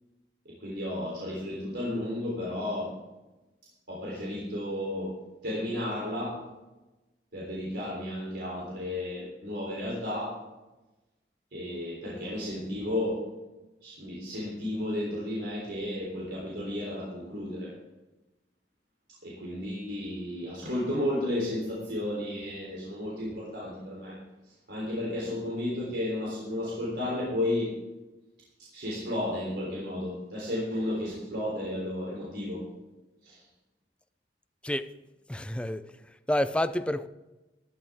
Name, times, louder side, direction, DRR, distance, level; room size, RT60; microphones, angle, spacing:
voice 1, 0.5-2.9 3.9-5.2 5.4-6.5 7.3-10.4 11.5-13.3 13.8-17.7 19.2-24.1 24.4-27.7 28.7-32.7 33.2-33.4, left 1 dB, 75° right, 3.6 m, -33 dB
voice 2, 35.3-35.9 36.3-37.1, left 1 dB, 5° left, 0.5 m, -28 dB
14.0 x 12.0 x 3.7 m
head